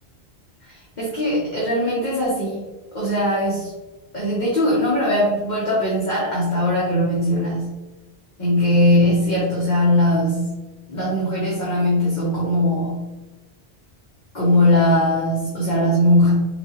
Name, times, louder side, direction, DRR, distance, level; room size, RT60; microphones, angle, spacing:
voice 1, 0.7-2.6 2.9-3.7 4.1-7.7 8.4-10.5 10.9-13.0 14.3-16.3, left 1 dB, 45° left, -7 dB, 1.2 m, -20 dB
4.7 x 3.6 x 3.0 m, 1.2 s
omnidirectional pair, 1.1 m